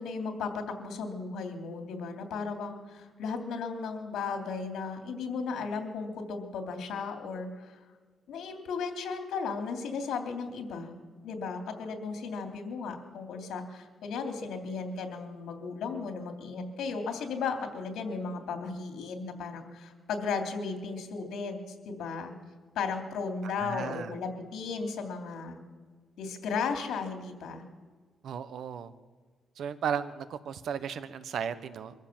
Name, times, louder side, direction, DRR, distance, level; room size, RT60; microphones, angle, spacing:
voice 1, 0.0-7.8 8.3-10.9 11.2-21.6 21.8-22.3 22.7-25.6 26.2-27.6, left 5 dB, 90° left, 4 dB, 3.1 m, -35 dB
voice 2, 23.4-24.1 28.2-28.9 29.6-31.9, right 7 dB, 65° right, 12 dB, 1.2 m, -35 dB
24.0 x 15.0 x 7.5 m, 1.5 s
cardioid pair, 140°, 0 cm